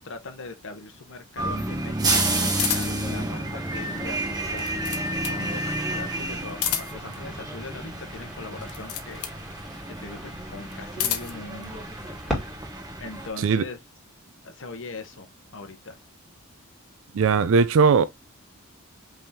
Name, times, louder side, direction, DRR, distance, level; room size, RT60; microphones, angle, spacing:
voice 1, 0.0-9.2 10.0-12.3 13.0-13.8 14.4-16.0, left 3 dB, 55° left, 0.8 m, -41 dB
sound 1, 1.4-13.3, right 1 dB, 15° right, 1.1 m, -30 dB
sound 2, 2.6-3.1 4.4-5.4 6.5-7.1 8.6-9.4 10.7-11.4, left 9 dB, 85° left, 1.0 m, -30 dB
sound 3, 3.6-12.6, equal, ahead, 2.0 m, -40 dB
voice 2, 17.1-18.0, right 5 dB, 60° right, 0.4 m, -19 dB
5.5 x 3.4 x 2.7 m
head